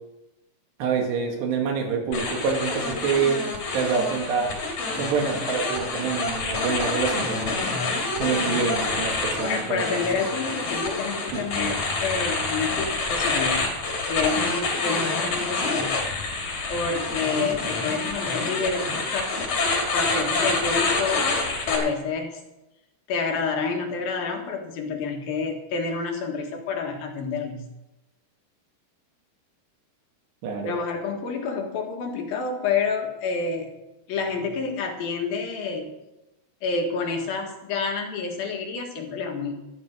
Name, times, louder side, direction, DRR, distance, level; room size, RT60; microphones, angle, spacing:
voice 1, 0.8-3.4 3.7-4.5 5.0-7.6 8.2-9.8 11.3-11.5 30.4-30.8, right 5 dB, 85° right, 3 dB, 4.1 m, -26 dB
sound 1, 2.1-21.8, left 3 dB, 50° left, 3.9 m, -27 dB
voice 2, 9.4-13.7 14.0-16.0 16.7-18.8 19.1-19.5 19.9-21.2 21.6-22.4 23.1-27.6 30.6-33.7 34.1-35.9 36.6-39.5, left 4 dB, 65° left, 2 dB, 3.3 m, -28 dB
12.0 x 11.5 x 6.5 m, 0.96 s
omnidirectional pair, 4.8 m